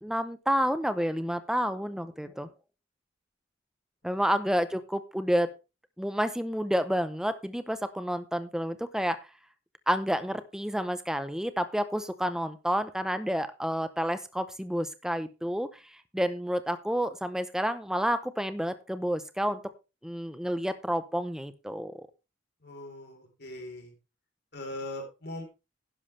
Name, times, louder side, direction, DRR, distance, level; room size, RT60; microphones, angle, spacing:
voice 1, 0.0-2.5 4.0-5.5 6.0-9.2 9.9-15.8 16.1-19.6 20.0-22.1, equal, 5° right, 11 dB, 0.7 m, -29 dB
voice 2, 22.6-23.9 24.5-25.4, left 1 dB, 55° left, 3 dB, 4.0 m, -40 dB
11.0 x 10.5 x 3.3 m, 0.29 s
head